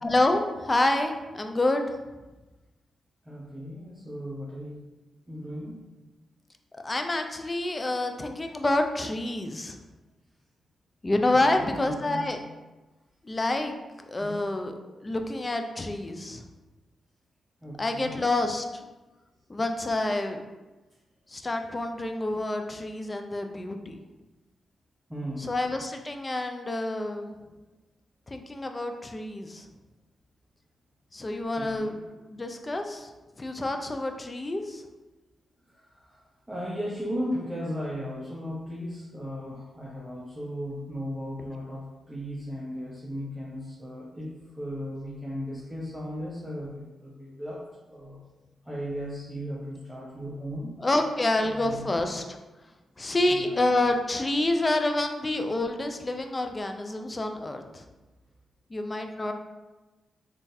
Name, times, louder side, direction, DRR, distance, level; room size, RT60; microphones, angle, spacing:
voice 1, 0.0-1.9 6.8-9.8 11.0-12.4 13.2-13.7 14.1-14.7 15.0-16.4 17.8-18.7 19.5-20.4 21.3-24.0 25.4-27.3 28.3-29.7 31.1-31.9 32.3-33.1 33.4-34.8 50.8-52.4 53.0-57.8 58.7-59.3, left 2 dB, 30° left, 5 dB, 0.4 m, -28 dB
voice 2, 3.2-4.9 5.3-5.8 11.3-12.3 14.2-14.3 17.6-18.1 25.1-25.5 31.6-32.0 35.9-36.2 36.5-48.2 48.6-50.7 51.4-51.8 53.3-53.6, equal, 10° right, -6 dB, 0.8 m, -36 dB
3.7 x 2.6 x 2.6 m, 1.1 s
supercardioid pair, 45°, 0 cm